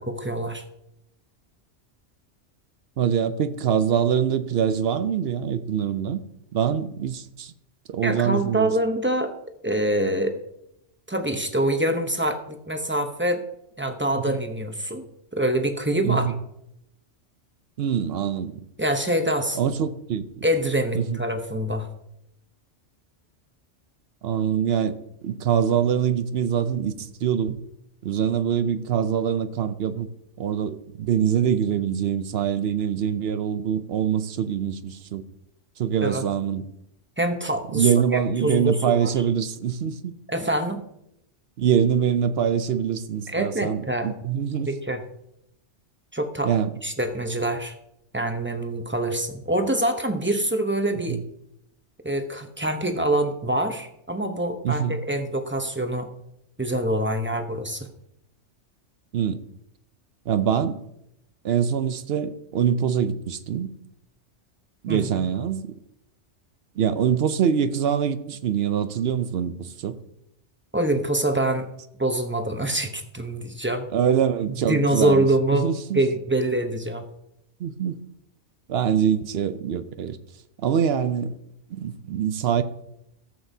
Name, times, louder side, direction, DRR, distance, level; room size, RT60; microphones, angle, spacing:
voice 1, 0.1-0.6 8.0-9.3 9.6-10.4 11.1-13.5 13.8-15.0 15.3-16.3 18.8-19.6 20.4-21.9 36.0-36.2 37.2-39.1 40.3-40.8 43.3-44.1 44.7-45.0 46.1-46.5 46.8-47.7 48.1-51.2 52.0-56.1 56.6-57.9 64.9-65.0 70.7-71.7 72.0-74.2 74.7-75.7 75.9-77.1, right 1 dB, 10° right, 6 dB, 0.7 m, -25 dB
voice 2, 3.0-6.2 6.5-7.5 7.9-8.7 16.0-16.4 17.8-18.6 19.5-20.5 20.9-21.2 24.2-27.6 28.0-30.1 30.4-35.2 35.8-36.7 37.7-40.1 41.6-44.7 46.4-46.7 51.1-51.2 54.6-55.0 59.1-59.4 60.3-60.9 61.4-63.7 64.8-65.7 66.8-70.0 73.9-76.0 77.6-78.0 78.7-80.2 80.6-81.4 81.7-82.6, right 8 dB, 65° right, 11 dB, 0.8 m, -24 dB
14.5 x 7.8 x 2.7 m, 0.79 s
omnidirectional pair, 1.2 m